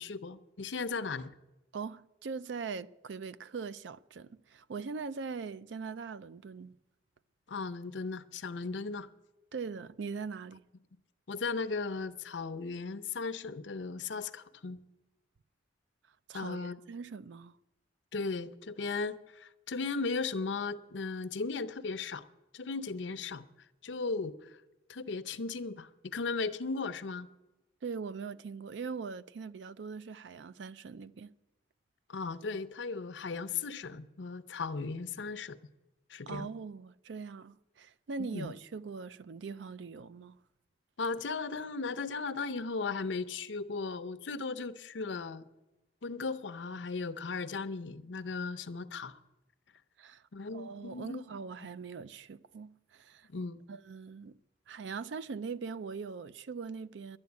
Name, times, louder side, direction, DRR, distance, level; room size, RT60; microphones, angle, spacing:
voice 1, 0.0-1.3 7.5-9.1 11.3-14.8 16.3-16.8 18.1-22.3 22.5-23.4 23.8-24.6 24.9-27.3 32.1-35.6 36.1-36.5 38.2-38.5 41.0-45.5 46.0-49.2 50.3-51.2 53.3-53.6, left 4 dB, 85° left, 0.7 m, -36 dB
voice 2, 1.7-6.8 9.5-10.6 16.3-17.5 27.8-31.3 36.3-40.4 50.0-50.2 50.5-53.3 53.7-54.3 54.7-57.2, right 5 dB, 75° right, 0.4 m, -41 dB
11.5 x 9.8 x 8.2 m
head